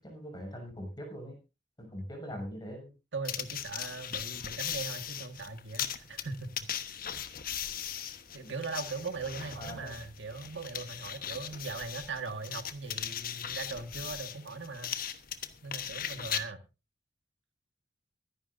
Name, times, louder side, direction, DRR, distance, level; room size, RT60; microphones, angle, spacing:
voice 1, 0.0-1.4 1.8-2.9 8.4-8.5 9.6-9.9, equal, 25° left, 2 dB, 6.7 m, -42 dB
voice 2, 3.1-7.0 8.3-14.9 15.6-16.6, right 4 dB, 85° right, 8 dB, 1.7 m, -40 dB
sound 1, 3.2-16.4, left 9 dB, 50° left, 1.2 m, -39 dB
23.5 x 11.0 x 2.6 m, 0.29 s
head